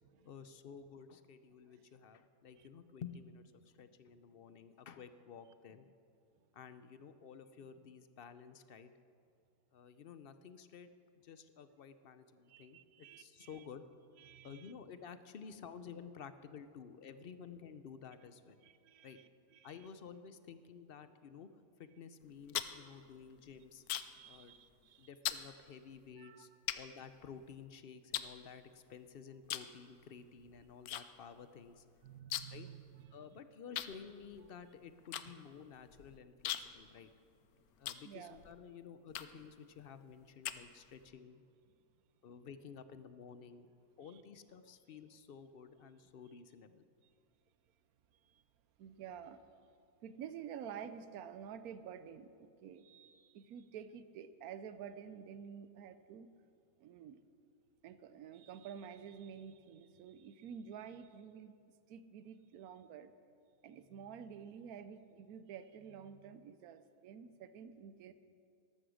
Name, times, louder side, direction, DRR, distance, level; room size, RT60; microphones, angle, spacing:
voice 1, 0.2-5.9 6.5-8.9 9.7-10.9 11.2-13.9 14.4-18.6 19.0-19.2 19.6-21.5 21.8-23.8 24.2-24.5 25.0-26.5 26.7-31.8 32.5-32.7 33.1-37.1 37.8-41.4 42.2-43.7 44.0-46.8, left 6 dB, 55° left, 12 dB, 0.7 m, -52 dB
voice 2, 12.5-13.7 14.2-14.7 18.6-19.9 22.8-23.0 23.9-25.1 26.2-26.5 32.0-33.4 38.0-38.4 44.0-44.2 44.9-45.0 47.0-47.1 48.2-48.4 48.8-49.4 50.0-56.3 56.8-57.2 57.8-61.6 61.9-63.1 63.6-68.1, right 8 dB, 80° right, 12 dB, 1.2 m, -50 dB
sound 1, 22.2-24.3 24.6-24.9 25.2-25.5 26.1-26.2 26.7-27.6 28.1-29.0 29.4-29.8 30.0-31.0 31.3-31.4 31.7-32.7 33.0-33.1 33.7-38.5 39.1-39.5 40.0-41.1, left 12 dB, 85° left, 1.1 m, -41 dB
13.0 x 13.0 x 6.4 m, 2.4 s
omnidirectional pair, 1.5 m